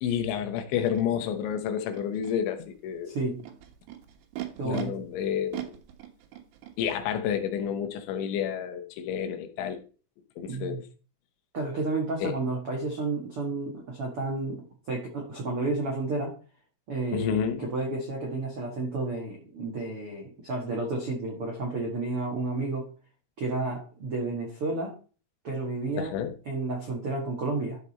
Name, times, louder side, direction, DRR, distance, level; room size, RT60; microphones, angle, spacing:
voice 1, 0.0-3.2 4.6-5.8 6.8-9.8 10.4-10.9 12.2-12.4 17.1-17.7 26.0-26.3, left 8 dB, 75° left, 3.1 m, -30 dB
Animal, 0.9-1.0 1.8-2.3 3.2-4.8 5.5-6.7, right 15 dB, 70° right, 2.9 m, -39 dB
voice 2, 3.0-3.4 4.6-4.9 10.5-10.8 11.5-16.4 16.9-22.9 23.4-24.9 25.4-26.2 26.4-27.8, right 3 dB, 90° right, 1.2 m, -31 dB
13.0 x 4.9 x 4.3 m
omnidirectional pair, 5.7 m